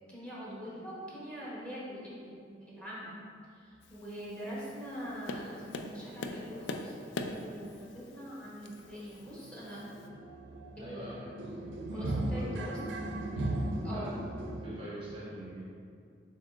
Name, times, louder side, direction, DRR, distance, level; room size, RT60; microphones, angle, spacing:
voice 1, 0.1-3.1 3.6-9.8 10.8-11.0 11.9-13.3 13.8-14.1, equal, 5° left, -7 dB, 1.0 m, -43 dB
Tap, 3.8-10.1, left 2 dB, 75° left, 0.3 m, -44 dB
sound 1, 7.8-7.9 8.2-8.4 8.6-14.7, right 1 dB, 70° right, 0.4 m, -37 dB
voice 2, 10.8-12.5 13.9-14.2 14.6-15.7, right 1 dB, 30° right, -7 dB, 0.7 m, -44 dB
7.3 x 3.0 x 2.4 m, 2.3 s
head